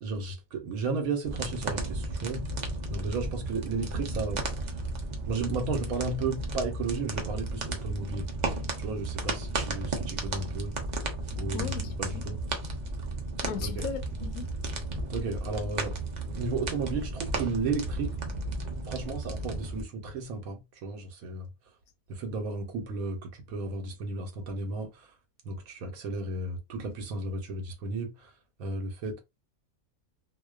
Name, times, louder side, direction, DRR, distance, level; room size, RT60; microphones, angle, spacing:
voice 1, 0.0-2.5 2.9-4.8 5.2-8.3 8.8-10.7 11.3-12.4 13.6-13.9 15.1-16.0 16.3-18.2 18.8-21.5 22.1-25.1 25.4-28.3 28.6-29.2, right 3 dB, 90° right, 1.1 m, -34 dB
sound 1, 1.2-19.8, right 2 dB, 65° right, 0.4 m, -34 dB
voice 2, 11.5-12.2 13.4-14.4, left 6 dB, 85° left, 1.0 m, -37 dB
2.5 x 2.1 x 2.3 m
omnidirectional pair, 1.5 m